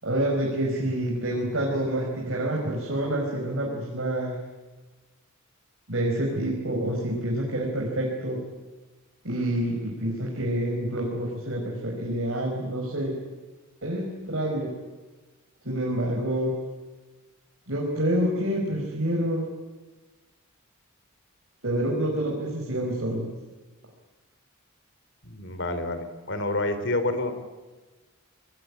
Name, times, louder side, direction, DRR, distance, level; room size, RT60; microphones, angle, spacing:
voice 1, 0.0-4.4 5.9-8.4 9.2-13.2 13.8-14.7 15.6-16.5 17.7-19.5 21.6-23.3, right 1 dB, 60° right, -1 dB, 5.1 m, -27 dB
voice 2, 25.2-27.3, left 2 dB, 55° left, 9 dB, 3.2 m, -28 dB
27.0 x 21.0 x 8.5 m, 1.2 s
head